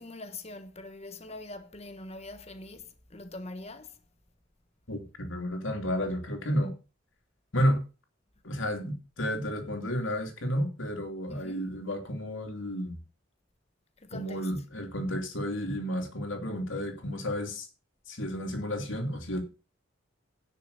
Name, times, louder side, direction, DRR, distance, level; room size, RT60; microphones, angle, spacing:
voice 1, 0.0-4.0 11.3-11.7 14.0-14.5, left 2 dB, 30° left, 1.3 m, -43 dB
voice 2, 4.9-6.7 7.5-7.8 8.4-13.0 14.1-17.7 18.1-19.4, equal, 70° left, 3.0 m, -31 dB
10.5 x 6.6 x 6.9 m
head